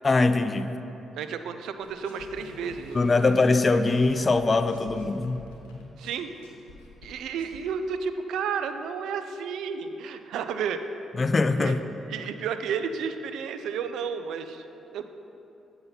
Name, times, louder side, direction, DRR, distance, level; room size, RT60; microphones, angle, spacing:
voice 1, 0.0-0.7 2.9-5.4 11.2-11.8, left 3 dB, 35° left, 10 dB, 0.4 m, -22 dB
voice 2, 1.1-3.3 6.0-6.3 7.0-10.8 11.6-11.8 12.1-15.1, right 6 dB, 70° right, 9 dB, 0.4 m, -32 dB
sound 1, 1.8-7.6, left 2 dB, 85° left, 1.0 m, -48 dB
7.8 x 5.6 x 5.6 m, 2.9 s
hypercardioid pair, 45°, 0 cm